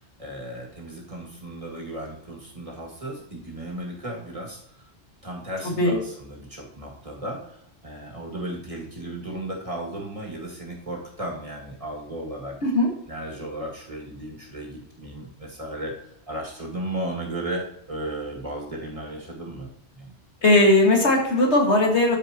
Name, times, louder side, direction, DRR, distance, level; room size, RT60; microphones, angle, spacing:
voice 1, 0.2-4.6 5.2-7.6 7.8-12.6 13.1-15.9 16.3-19.7 19.9-20.1, right 1 dB, 30° right, -2 dB, 2.2 m, -35 dB
voice 2, 5.6-6.0 12.6-12.9 20.4-22.2, left 2 dB, 65° left, 0 dB, 2.1 m, -18 dB
13.5 x 5.0 x 2.9 m, 0.74 s
omnidirectional pair, 1.3 m